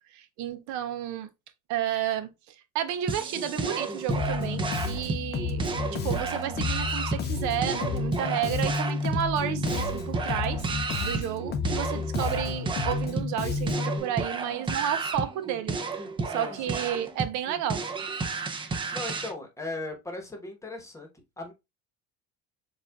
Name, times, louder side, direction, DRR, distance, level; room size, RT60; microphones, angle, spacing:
voice 1, 0.1-1.3 1.7-5.6 5.9-10.6 11.0-17.8, right 10 dB, 65° right, 0.6 m, -32 dB
sound 1, 3.1-19.3, right 4 dB, 15° right, 0.4 m, -32 dB
Bass guitar, 4.1-14.0, left 4 dB, 30° left, 0.6 m, -31 dB
voice 2, 16.3-16.8 18.6-21.1 21.4-21.5, left 2 dB, 10° left, 1.0 m, -38 dB
7.1 x 2.4 x 2.3 m
cardioid pair, 145°, 32 cm